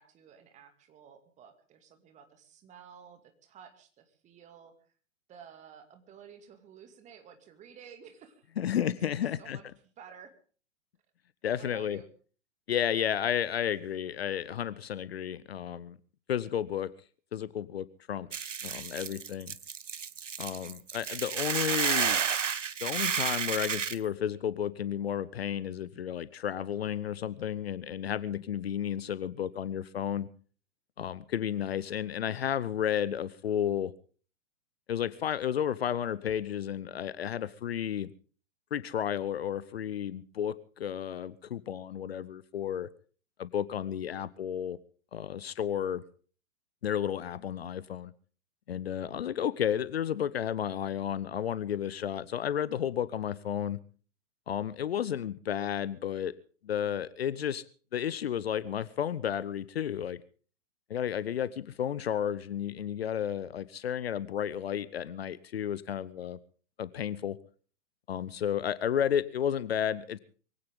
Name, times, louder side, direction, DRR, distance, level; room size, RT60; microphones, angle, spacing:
voice 1, 0.0-4.8 5.3-8.5 8.8-8.9 9.2-9.7 10.0-10.3 11.6-12.1, right 8 dB, 20° right, 7 dB, 2.4 m, -53 dB
voice 2, 8.6-9.6 11.4-12.0 12.7-16.0 16.3-16.9 17.3-19.5 20.4-22.2 22.8-30.3 31.0-33.9 34.9-38.1 38.7-42.9 43.4-44.8 45.1-46.0 46.8-48.1 48.7-53.8 54.5-56.3 56.6-57.6 57.9-60.2 60.9-66.4 66.8-67.4 68.1-70.2, left 9 dB, 50° left, 18 dB, 0.8 m, -32 dB
Hiss / Boiling, 18.3-23.9, right 7 dB, 70° right, 1.0 m, -31 dB
22.5 x 16.5 x 3.7 m, 0.42 s
figure-of-eight pair, 115°, 38 cm